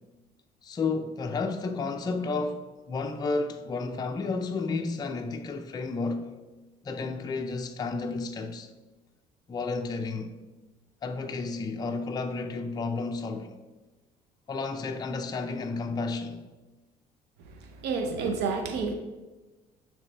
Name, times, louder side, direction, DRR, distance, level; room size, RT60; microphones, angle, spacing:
voice 1, 0.6-6.3 6.8-8.7 9.5-10.4 11.0-13.6 14.5-16.4, left 3 dB, 25° left, 0.4 m, -32 dB
voice 2, 17.5-18.9, right 4 dB, 80° right, 0.7 m, -30 dB
9.5 x 3.3 x 3.2 m
cardioid pair, 110°, 17 cm